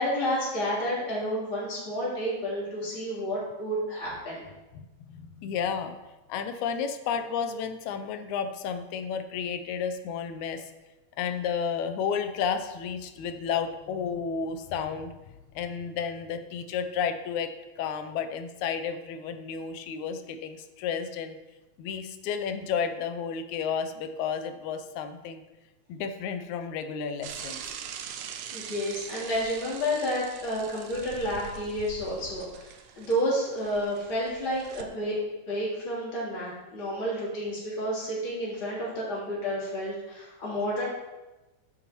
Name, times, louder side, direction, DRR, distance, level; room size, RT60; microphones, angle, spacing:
voice 1, 0.0-4.4 28.5-40.8, equal, 40° left, -8 dB, 4.1 m, -30 dB
voice 2, 4.7-6.0 6.3-10.7 11.2-15.1 15.6-21.4 21.8-25.4 25.9-27.6, left 7 dB, 80° left, 8 dB, 2.1 m, -32 dB
Bicycle / Mechanisms, 27.2-34.8, right 8 dB, 90° right, 2.2 m, -43 dB
11.0 x 8.8 x 3.1 m, 1.1 s
omnidirectional pair, 3.3 m